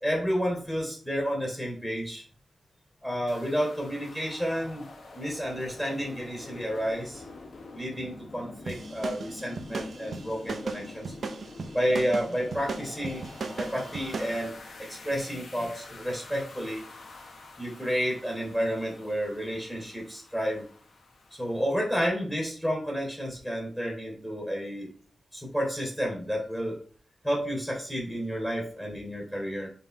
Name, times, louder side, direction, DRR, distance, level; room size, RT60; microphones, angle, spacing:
voice 1, 0.0-2.2 3.0-4.9 5.1-7.2 7.7-11.1 11.7-13.3 13.5-16.8 17.6-20.6 21.3-24.9 25.3-26.8 27.2-29.7, equal, 5° left, -3 dB, 2.8 m, -31 dB
sound 1, 3.3-21.9, left 3 dB, 80° left, 1.4 m, -47 dB
sound 2, 8.7-14.4, right 4 dB, 75° right, 0.8 m, -36 dB
5.5 x 4.1 x 4.5 m, 0.43 s
wide cardioid pair, 110°, 0 cm